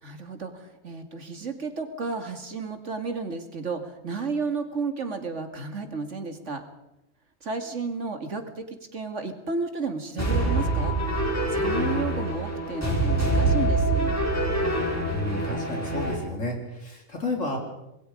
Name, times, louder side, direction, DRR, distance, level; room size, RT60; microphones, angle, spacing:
voice 1, 0.0-6.6 7.4-11.0 11.5-14.2, right 4 dB, 70° right, 6 dB, 2.6 m, -32 dB
sound 1, 10.2-16.1, right 2 dB, 10° left, 5.5 m, -25 dB
voice 2, 15.0-17.6, left 2 dB, 80° left, 1 dB, 4.6 m, -31 dB
26.5 x 21.0 x 5.2 m, 0.91 s
omnidirectional pair, 1.3 m